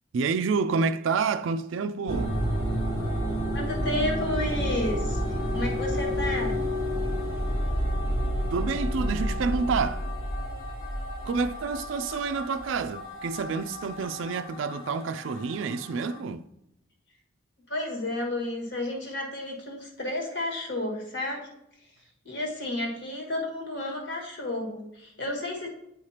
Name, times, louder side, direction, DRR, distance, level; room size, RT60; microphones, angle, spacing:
voice 1, 0.1-2.4 8.5-10.0 11.2-16.5, right 5 dB, 65° right, 0.3 m, -28 dB
sound 1, 2.1-16.2, equal, 75° left, 1.4 m, -30 dB
voice 2, 3.5-6.6 17.7-21.5 21.8-21.9 22.2-25.7, left 1 dB, 55° left, 1.7 m, -31 dB
8.8 x 4.9 x 2.8 m
head